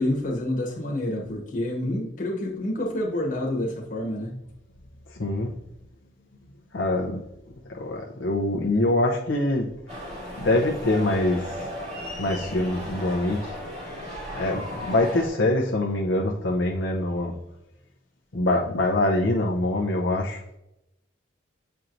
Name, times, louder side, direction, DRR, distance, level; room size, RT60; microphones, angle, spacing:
voice 1, 0.0-4.3 14.7-15.0, left 1 dB, 40° left, -1 dB, 1.2 m, -28 dB
voice 2, 5.1-5.5 6.7-7.2 7.7-9.6 10.4-11.6 12.2-13.5 14.3-17.3 18.3-20.4, left 1 dB, 70° left, -1 dB, 0.7 m, -24 dB
sound 1, 9.9-15.3, left 1 dB, 35° right, 1.8 m, -36 dB
8.1 x 4.5 x 2.6 m, 0.86 s
head